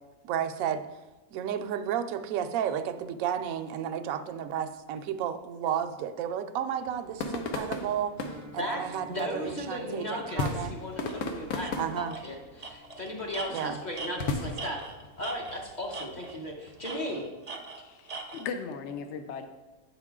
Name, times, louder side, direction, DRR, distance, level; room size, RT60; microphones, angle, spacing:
voice 1, 0.2-0.9 1.3-8.1 8.5-10.7 11.8-12.2 13.5-13.8, right 9 dB, 75° right, 8 dB, 0.9 m, -32 dB
sound 1, 6.8-17.1, left 3 dB, 85° left, 1.3 m, -37 dB
Guitar, 8.2-16.0, left 1 dB, 10° right, 0.7 m, -54 dB
voice 2, 8.6-14.8 15.2-17.2, equal, 35° left, 0 dB, 1.1 m, -36 dB
Tools, 11.1-11.2 11.6-11.7 12.1-12.3 12.6-15.6 15.9-16.5 16.8-18.5, right 3 dB, 55° right, 0.4 m, -41 dB
voice 3, 17.8-19.5, left 6 dB, 60° left, 7 dB, 0.8 m, -37 dB
8.8 x 6.0 x 3.6 m, 1.1 s
omnidirectional pair, 1.5 m